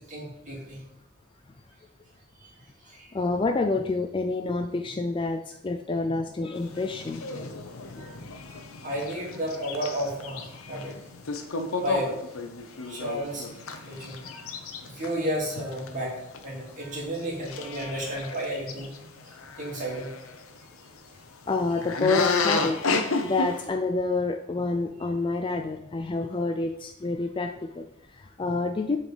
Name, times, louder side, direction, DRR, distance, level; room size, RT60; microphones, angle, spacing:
voice 1, 0.1-0.8 2.9-3.1 8.0-8.2 8.8-11.0 11.8-12.1 12.8-13.5 13.8-14.5 14.8-16.1 16.4-18.9 19.5-20.1, equal, 35° right, -4 dB, 2.4 m, -32 dB
voice 2, 3.1-7.8 21.5-22.8 23.2-29.0, left 3 dB, 20° left, 6 dB, 0.3 m, -28 dB
sound 1, 6.5-16.9 17.2-17.3 17.4-20.4 21.8-23.6, left 3 dB, 70° left, 0.8 m, -32 dB
7.6 x 4.2 x 5.0 m, 0.83 s
head